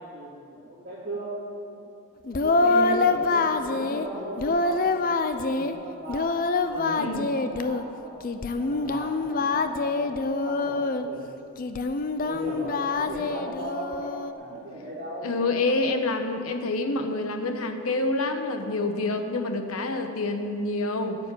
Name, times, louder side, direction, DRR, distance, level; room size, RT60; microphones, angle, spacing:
voice 1, 0.0-1.6 2.4-6.3 6.7-8.1 8.5-11.3 12.2-15.4, right 1 dB, 40° right, -12 dB, 3.4 m, -37 dB
Singing, 2.3-4.1 4.4-5.7 6.1-7.8 8.2-11.1 11.6-14.3, left 3 dB, 40° left, 0.5 m, -25 dB
voice 2, 7.0-7.3 15.2-21.2, left 2 dB, 70° left, 6 dB, 1.0 m, -27 dB
9.5 x 7.1 x 9.1 m, 2.6 s
head